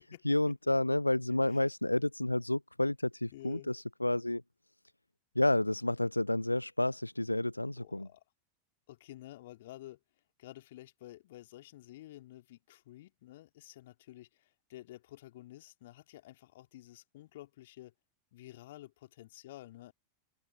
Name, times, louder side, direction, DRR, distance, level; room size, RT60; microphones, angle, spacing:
voice 1, 0.2-4.4 5.4-8.1, left 1 dB, 85° left, 0.4 m, -30 dB
voice 2, 3.3-3.7 7.8-8.2 8.9-10.0 10.4-17.9 18.3-19.9, left 15 dB, 55° left, 2.9 m, -51 dB
open air
figure-of-eight pair, 90°, 0 cm